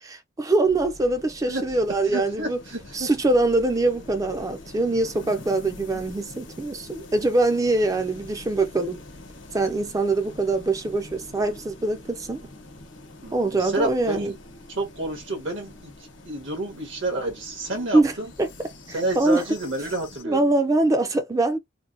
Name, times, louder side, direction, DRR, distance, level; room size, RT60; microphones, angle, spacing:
voice 1, 0.0-2.6 2.9-9.0 9.5-12.4 13.3-14.3 17.9-18.1 18.4-18.5 19.2-19.4 20.2-21.6, right 2 dB, 15° right, 0.3 m, -23 dB
sound 1, 0.6-20.2, left 2 dB, 85° left, 0.9 m, -45 dB
voice 2, 2.1-3.1 13.2-14.3 14.7-15.9 16.2-18.3 18.9-20.5, right 2 dB, 80° right, 1.4 m, -29 dB
3.4 x 2.1 x 2.5 m
head